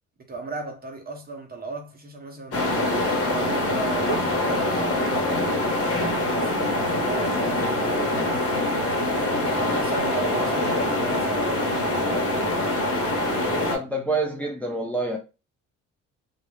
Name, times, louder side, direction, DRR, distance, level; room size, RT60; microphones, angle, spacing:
voice 1, 0.2-2.9 3.2-8.7 9.3-12.8, right 3 dB, 30° right, 0.7 m, -37 dB
sound 1, 2.5-13.8, left 1 dB, 50° left, 1.0 m, -24 dB
voice 2, 13.7-15.2, right 2 dB, 5° left, 0.5 m, -27 dB
2.3 x 2.1 x 3.0 m
cardioid pair, 90°, 30 cm